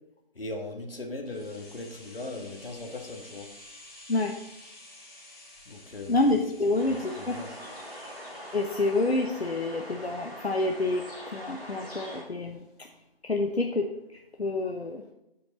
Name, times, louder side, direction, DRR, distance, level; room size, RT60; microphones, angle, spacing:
voice 1, 0.3-3.5 5.6-6.4 6.8-7.5, left 2 dB, 65° left, 2 dB, 1.7 m, -39 dB
sound 1, 1.2-11.1 11.4-11.5, left 1 dB, 25° left, 2.4 m, -52 dB
voice 2, 6.1-7.4 8.5-11.0 11.3-12.6 13.2-13.9 14.4-15.0, left 2 dB, 80° left, 2 dB, 0.9 m, -27 dB
sound 2, 6.7-12.2, equal, 10° right, 3.1 m, -43 dB
15.0 x 5.2 x 3.0 m, 0.88 s
figure-of-eight pair, 160°, 31 cm